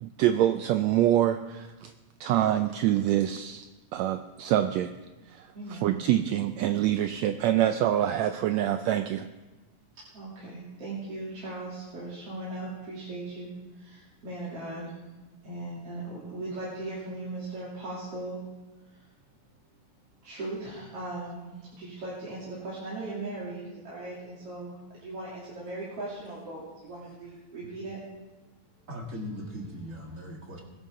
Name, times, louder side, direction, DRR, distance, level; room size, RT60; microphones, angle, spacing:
voice 1, 0.0-1.9 2.2-3.7 3.9-4.9 5.3-5.5 5.8-9.3, right 12 dB, 80° right, 9 dB, 1.6 m, -25 dB
voice 2, 5.5-6.0 9.9-14.9 15.4-18.4 18.8-19.1 20.2-28.0, right 2 dB, 50° right, -8 dB, 3.8 m, -38 dB
voice 3, 28.9-30.6, equal, 30° right, 0 dB, 1.8 m, -39 dB
20.5 x 11.0 x 3.7 m, 1.2 s
omnidirectional pair, 3.6 m